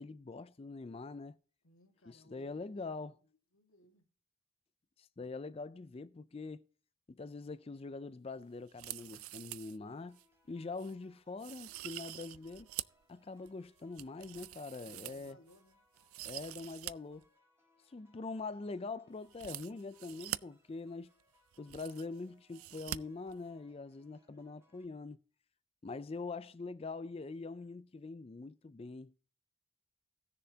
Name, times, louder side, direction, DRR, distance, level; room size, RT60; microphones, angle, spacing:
voice 1, 0.0-1.4 2.1-3.1 5.0-6.6 7.1-10.2 10.5-12.7 13.1-15.4 16.2-17.2 17.9-21.1 21.6-25.2 25.8-29.2, left 3 dB, 30° left, 0.3 m, -44 dB
voice 2, 1.6-3.3 3.5-4.1 14.9-15.8, left 1 dB, 85° left, 1.8 m, -63 dB
sound 1, 8.7-9.8 10.1-10.2 10.8-10.9 11.4-13.0 13.5-15.6 16.0-16.9 17.2-17.3 19.3-20.4 21.2-21.3 21.5-22.2 22.5-23.0 23.3-23.4, right 15 dB, 90° right, 0.3 m, -45 dB
sound 2, 9.8-24.8, equal, 10° right, 1.9 m, -72 dB
Explosion, 11.5-13.3, right 2 dB, 75° right, 1.7 m, -69 dB
17.5 x 6.8 x 2.8 m
head